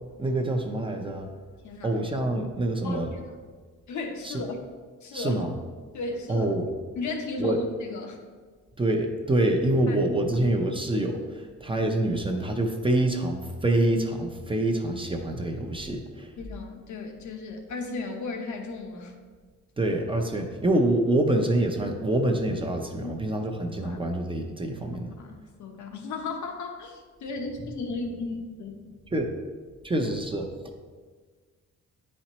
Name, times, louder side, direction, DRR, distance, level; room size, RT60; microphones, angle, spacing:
voice 1, 0.1-1.3 1.8-3.1 4.2-4.4 5.1-5.5 6.3-6.7 7.4-7.6 8.8-16.3 19.8-25.1 29.1-29.4 29.8-30.5, right 1 dB, 15° right, 3 dB, 0.5 m, -26 dB
voice 2, 1.6-2.0 2.8-3.4 3.9-4.6 5.0-5.5 5.9-6.5 7.0-8.2 9.9-10.0 10.3-10.5 16.4-19.1 23.0-23.1 23.8-24.0 25.2-28.9, left 3 dB, 75° left, 4 dB, 0.9 m, -35 dB
9.6 x 4.2 x 3.0 m, 1.5 s
cardioid pair, 140°, 30 cm